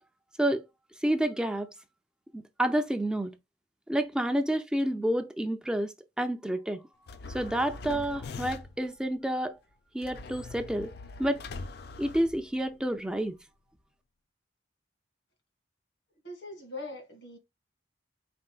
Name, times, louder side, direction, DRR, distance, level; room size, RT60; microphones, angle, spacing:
voice 1, 1.0-1.7 2.3-3.3 3.9-6.8 7.3-9.6 9.9-10.9 11.2-11.4 12.0-13.4, right 1 dB, 5° right, 0.3 m, -29 dB
sound 1, 7.1-8.9 10.0-12.9, left 3 dB, 60° left, 0.4 m, -42 dB
voice 2, 16.2-17.4, left 2 dB, 90° left, 1.6 m, -41 dB
4.3 x 4.2 x 2.3 m
head